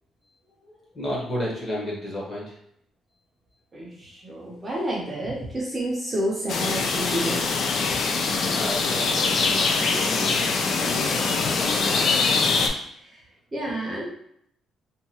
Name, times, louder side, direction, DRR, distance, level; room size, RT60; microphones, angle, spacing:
voice 1, 0.6-2.6 8.3-10.5 10.8-12.1, equal, 25° left, -5 dB, 0.8 m, -33 dB
voice 2, 3.7-7.5 12.9-13.2 13.5-14.1, right 1 dB, 20° right, -4 dB, 0.5 m, -30 dB
sound 1, 6.5-12.7, left 4 dB, 50° left, 0.3 m, -23 dB
2.8 x 2.2 x 2.7 m, 0.70 s
cardioid pair, 165°, 0 cm